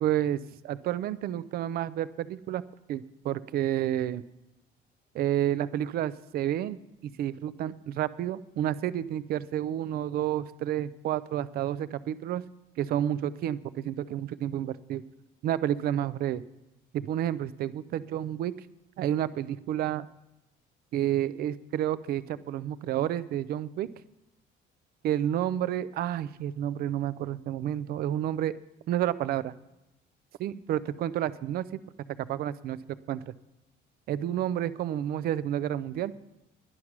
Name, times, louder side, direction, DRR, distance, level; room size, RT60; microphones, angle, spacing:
voice 1, 0.0-2.6 2.9-4.2 5.1-6.8 7.2-12.4 12.8-15.0 15.4-16.4 16.9-18.5 19.0-20.1 20.9-23.9 25.0-28.5 28.9-29.5 30.4-31.7 32.2-32.8 33.1-33.2 34.1-36.1, right 11 dB, 50° right, 16 dB, 0.5 m, -30 dB
11.5 x 11.0 x 6.0 m, 0.93 s
cardioid pair, 175°, 20 cm